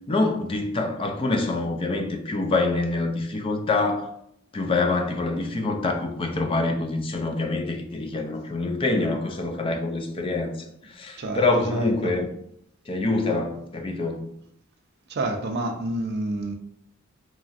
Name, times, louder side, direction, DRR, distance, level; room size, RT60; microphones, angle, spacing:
voice 1, 0.1-4.1 4.5-10.5 10.9-12.3 12.9-14.3, left 2 dB, 25° left, 0.4 m, -25 dB
voice 2, 11.2-12.1 15.1-16.5, right 2 dB, 55° right, 0.4 m, -29 dB
3.0 x 2.5 x 2.4 m
head